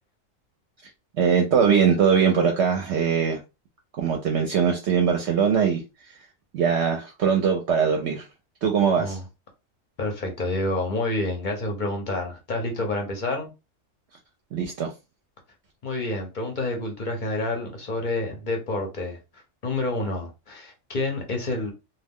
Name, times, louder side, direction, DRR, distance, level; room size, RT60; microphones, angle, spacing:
voice 1, 1.2-3.4 4.0-5.8 6.5-8.2 8.6-9.2 14.5-14.9, right 6 dB, 65° right, 0.8 m, -21 dB
voice 2, 10.0-13.5 15.8-21.7, left 2 dB, 50° left, 0.6 m, -28 dB
2.3 x 2.2 x 3.4 m
omnidirectional pair, 1.4 m